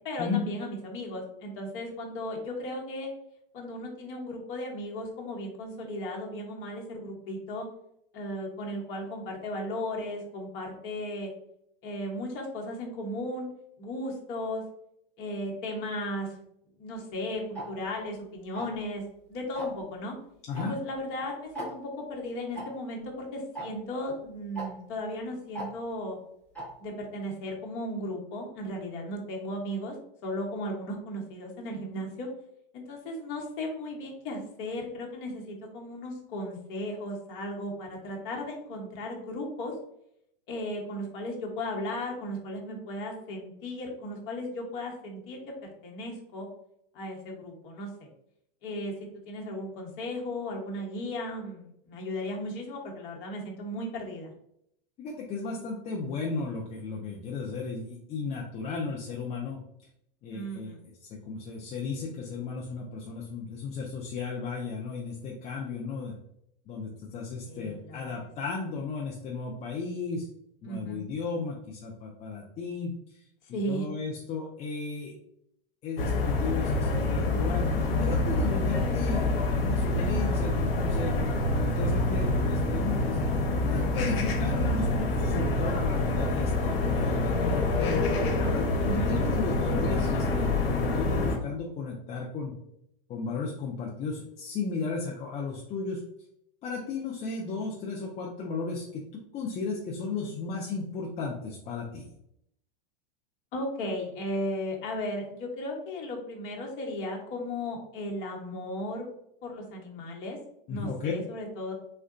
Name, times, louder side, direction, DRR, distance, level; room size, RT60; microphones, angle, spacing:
voice 1, 0.0-3.1 3.5-7.7 8.1-11.3 11.8-13.5 13.8-14.6 15.2-16.4 16.8-19.0 19.3-20.1 20.7-26.2 26.8-29.9 30.2-32.3 32.7-39.7 40.5-46.5 46.9-48.1 48.6-48.9 49.2-54.3 60.3-60.8 67.4-68.3 70.6-71.0 73.5-73.9 88.8-89.1 103.5-109.1 109.4-110.4 110.7-111.7, left 1 dB, 45° left, 0 dB, 0.9 m, -36 dB
Tick-tock, 17.5-17.7 18.5-18.8 19.5-19.8 20.5-20.7 20.9-21.0 21.5-21.7 22.5-22.6 23.5-23.7 24.5-24.7 25.5-25.7 26.5-26.7, right 1 dB, 5° left, 1.1 m, -36 dB
voice 2, 55.0-59.6 60.2-60.7 61.2-66.1 66.7-70.3 70.6-72.9 73.7-75.1 75.8-77.7 78.0-83.2 83.6-88.1 88.4-92.5 93.1-96.0 96.6-102.1 110.7-111.1, left 4 dB, 25° left, -2 dB, 0.4 m, -34 dB
sound 1, 76.0-91.4, left 2 dB, 85° left, 0.7 m, -26 dB
3.5 x 2.2 x 2.4 m, 0.75 s
hypercardioid pair, 120°, 29 cm